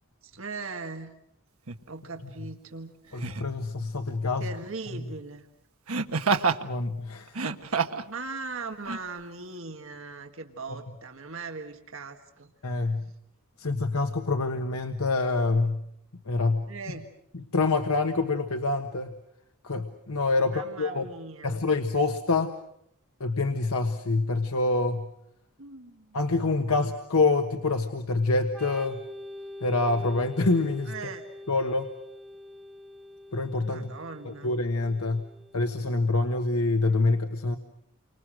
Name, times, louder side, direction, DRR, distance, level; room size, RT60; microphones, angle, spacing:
voice 1, 0.2-1.1 1.9-3.0 4.4-5.5 8.1-12.9 16.7-17.1 20.4-21.6 25.6-26.2 30.9-31.3 33.6-34.5, right 3 dB, 65° right, 5 dB, 1.8 m, -40 dB
Laughter, 1.7-1.8 3.2-3.5 5.9-6.6 7.3-8.1 8.8-9.0, right 5 dB, 80° right, 1.4 m, -27 dB
voice 2, 3.1-4.5 4.9-5.0 6.6-7.4 12.6-13.1 13.6-15.8 16.2-16.7 17.3-19.1 19.6-21.1 21.4-22.5 23.2-25.1 26.1-29.0 29.6-30.9 31.5-31.9 33.3-33.9 34.2-35.2 35.5-37.6, left 3 dB, 90° left, 6 dB, 1.4 m, -26 dB
Organ, 28.5-36.0, left 1 dB, 5° left, 3.1 m, -45 dB
29.5 x 25.5 x 6.4 m, 0.73 s
head